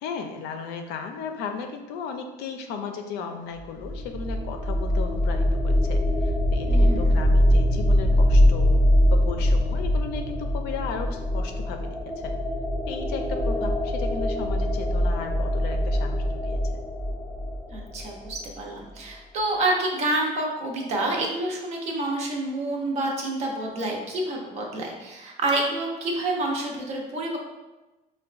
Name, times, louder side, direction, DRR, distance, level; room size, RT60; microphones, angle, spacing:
voice 1, 0.0-8.8 9.1-12.4 12.9-16.6, left 6 dB, 90° left, 5 dB, 0.4 m, -35 dB
sound 1, 3.6-18.4, left 1 dB, 5° left, 0.4 m, -23 dB
voice 2, 6.7-7.2 17.7-27.4, right 2 dB, 45° right, 0 dB, 0.6 m, -28 dB
4.5 x 2.2 x 2.4 m, 1.1 s
cardioid pair, 165°, 16 cm